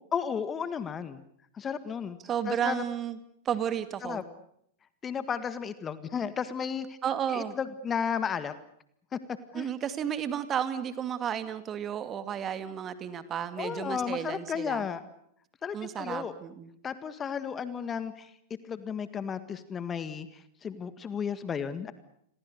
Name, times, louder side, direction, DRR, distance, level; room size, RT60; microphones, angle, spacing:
voice 1, 0.1-1.2 1.6-2.2 2.5-2.8 4.0-4.2 5.0-7.0 7.3-8.5 9.1-9.2 9.5-9.7 13.6-15.0 15.6-16.3 16.8-18.3 18.7-20.3 20.6-21.9, left 7 dB, 25° left, 13 dB, 1.8 m, -33 dB
voice 2, 2.2-3.2 3.4-4.2 7.0-7.6 9.5-14.9 15.7-16.7, right 9 dB, 30° right, 11 dB, 2.3 m, -32 dB
30.0 x 22.0 x 6.7 m, 0.70 s
figure-of-eight pair, 95°, 0 cm